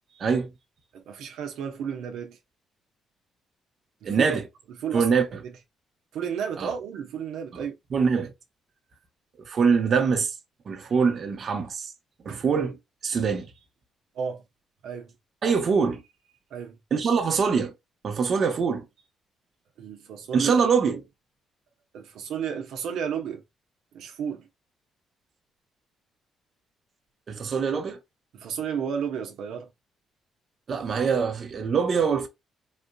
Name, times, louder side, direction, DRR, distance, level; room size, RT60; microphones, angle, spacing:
voice 1, 0.2-0.5 4.0-4.4 4.9-5.2 6.6-6.7 7.9-8.3 9.4-10.3 10.7-11.9 12.2-12.8 13.0-13.5 15.4-16.0 16.9-17.7 18.0-18.8 20.3-21.0 27.3-28.0 30.7-32.3, right 5 dB, 50° right, 0.9 m, -23 dB
voice 2, 0.9-2.4 4.0-4.3 4.8-5.5 6.1-7.7 12.3-12.4 14.1-14.4 14.8-15.1 16.5-16.8 19.8-20.6 21.9-23.4 23.9-24.5 28.3-29.7, right 7 dB, 85° right, 0.9 m, -32 dB
4.1 x 2.7 x 2.3 m
cardioid pair, 90°, 0 cm